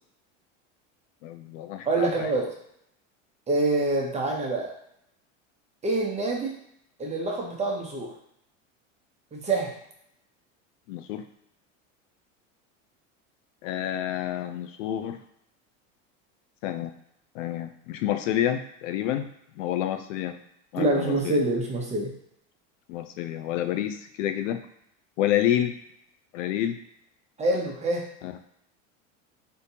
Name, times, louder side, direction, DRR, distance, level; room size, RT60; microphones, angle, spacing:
voice 1, 1.2-2.3 10.9-11.2 13.6-15.2 16.6-16.9 17.3-19.3 19.6-20.4 20.7-21.4 22.9-24.6 25.2-25.7 26.3-26.8 28.2-28.3, left 11 dB, 80° left, 8 dB, 0.5 m, -28 dB
voice 2, 1.9-2.5 3.5-4.7 5.8-6.5 7.0-8.1 9.3-9.8 20.8-22.1 27.4-28.0, right 2 dB, 15° right, -1 dB, 0.7 m, -26 dB
3.6 x 2.7 x 2.8 m, 0.73 s
supercardioid pair, 115°, 38 cm